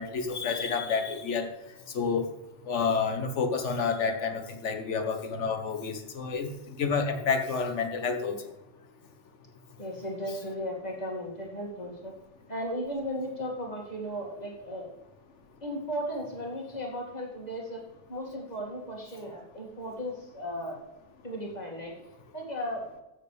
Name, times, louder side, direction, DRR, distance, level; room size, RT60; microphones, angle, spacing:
voice 1, 0.0-1.5 1.9-2.3 2.7-6.5 6.8-8.4, left 5 dB, 65° left, 7 dB, 1.4 m, -29 dB
voice 2, 9.8-12.1 12.5-14.9 15.6-17.8 18.1-20.8 21.2-21.9 22.3-22.8, equal, 30° left, -1 dB, 2.5 m, -35 dB
13.5 x 7.9 x 3.4 m, 0.99 s
omnidirectional pair, 1.3 m